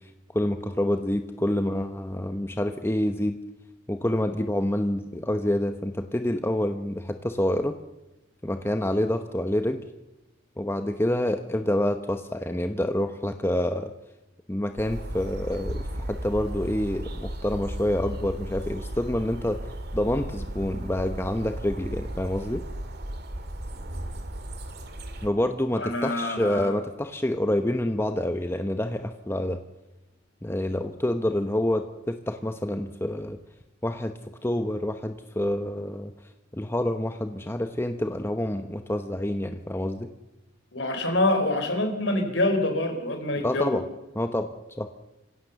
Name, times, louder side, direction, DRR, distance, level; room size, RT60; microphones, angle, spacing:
voice 1, 0.3-3.4 3.9-7.8 8.4-9.8 10.6-13.9 14.5-19.6 19.9-22.6 25.2-29.6 30.4-33.4 33.8-34.1 34.4-36.1 36.5-40.1 43.4-43.8 44.2-44.5 44.8-44.9, left 1 dB, 10° left, 7 dB, 0.9 m, -27 dB
sound 1, 14.8-25.3, right 1 dB, 55° right, 2.2 m, -35 dB
voice 2, 25.8-26.7 40.7-43.8, left 1 dB, 65° left, 6 dB, 4.4 m, -26 dB
26.0 x 16.5 x 7.0 m, 0.98 s
head